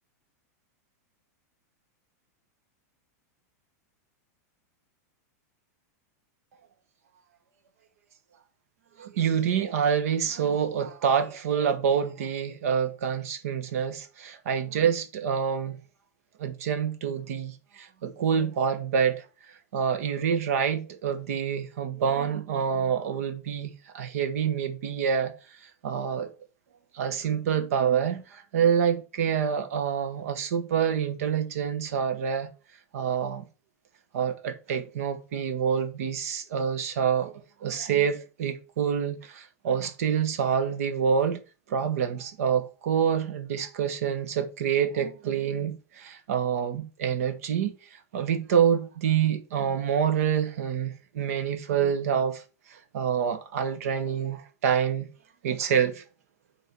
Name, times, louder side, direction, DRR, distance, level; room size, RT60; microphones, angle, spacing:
voice 1, 9.0-15.7 16.4-19.2 19.7-25.3 25.8-26.3 26.9-32.5 32.9-33.4 34.1-37.3 37.6-41.4 41.7-47.7 48.1-52.4 52.9-55.1 55.4-56.0, right 7 dB, 60° right, 1.3 m, -27 dB
6.8 x 3.8 x 6.1 m
supercardioid pair, 180°, 9 cm